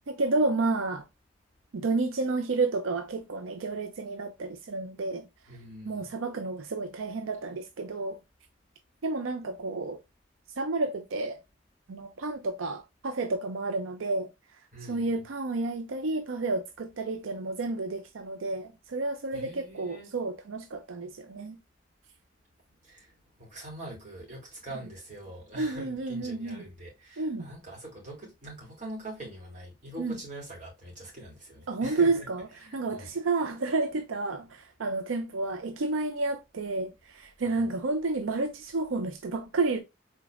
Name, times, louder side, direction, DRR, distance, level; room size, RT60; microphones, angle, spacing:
voice 1, 0.1-1.1 1.7-5.3 5.8-8.2 9.0-10.0 10.6-11.4 11.9-14.3 14.8-21.6 25.6-26.6 27.2-27.5 30.0-30.2 31.7-32.5 32.7-39.8, right 3 dB, 85° right, 0.5 m, -30 dB
voice 2, 5.5-6.1 14.7-15.2 19.3-20.1 22.8-32.3 32.6-33.1 37.4-37.6, right 1 dB, 35° right, 2.8 m, -44 dB
5.0 x 4.0 x 2.5 m
head